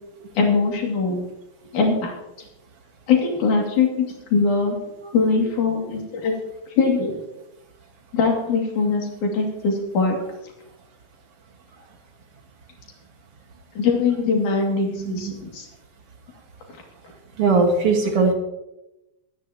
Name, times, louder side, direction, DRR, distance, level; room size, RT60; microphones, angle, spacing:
voice 1, 0.4-1.3 1.7-2.1 3.1-4.1 4.3-4.8 5.1-6.3 6.8-7.1 8.1-10.2 13.8-15.6, left 4 dB, 55° left, 0 dB, 3.8 m, -21 dB
voice 2, 14.9-15.4 17.4-18.3, right 4 dB, 50° right, 3 dB, 2.1 m, -20 dB
21.5 x 9.8 x 2.9 m, 0.92 s
omnidirectional pair, 4.3 m